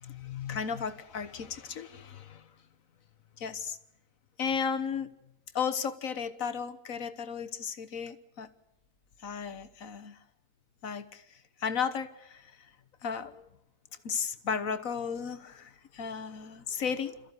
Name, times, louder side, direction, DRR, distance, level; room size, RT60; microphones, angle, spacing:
voice 1, 0.0-2.5 3.4-3.8 4.4-5.1 5.5-8.5 9.2-10.2 10.8-11.2 11.6-12.7 13.0-13.5 14.0-17.2, left 6 dB, 65° left, 12 dB, 1.5 m, -34 dB
27.5 x 14.5 x 9.6 m, 0.84 s
omnidirectional pair, 1.6 m